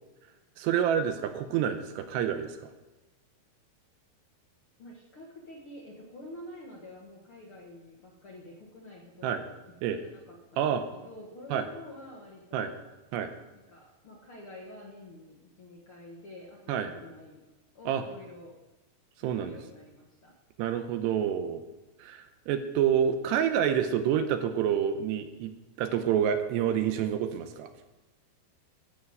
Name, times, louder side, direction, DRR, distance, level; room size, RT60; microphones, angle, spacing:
voice 1, 0.6-2.7 9.2-9.4 9.8-10.0 10.6-10.8 11.5-11.7 12.5-12.7 13.1-13.3 16.7-16.9 17.9-18.0 19.2-19.6 20.6-21.6 22.0-27.7, right 9 dB, 80° right, 8 dB, 2.9 m, -28 dB
voice 2, 4.8-9.5 9.9-12.7 13.5-17.4 17.7-18.5 19.2-20.3, left 1 dB, 55° left, -3 dB, 1.4 m, -48 dB
12.0 x 7.2 x 7.9 m, 1.1 s
omnidirectional pair, 4.9 m